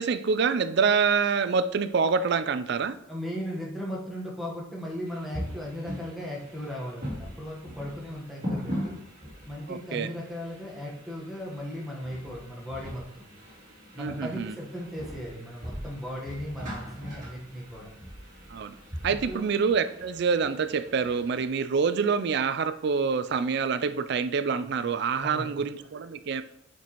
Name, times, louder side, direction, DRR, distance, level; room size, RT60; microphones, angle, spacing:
voice 1, 0.0-3.0 9.7-10.2 14.0-14.6 18.5-18.8 19.0-26.4, right 5 dB, 50° right, 12 dB, 0.4 m, -26 dB
voice 2, 3.1-9.0 9.4-13.2 13.9-17.9 19.3-19.5 25.2-25.6, equal, ahead, -3 dB, 1.2 m, -37 dB
sound 1, 5.0-21.5, equal, 35° right, 2.4 m, -40 dB
6.9 x 6.0 x 3.0 m, 0.74 s
head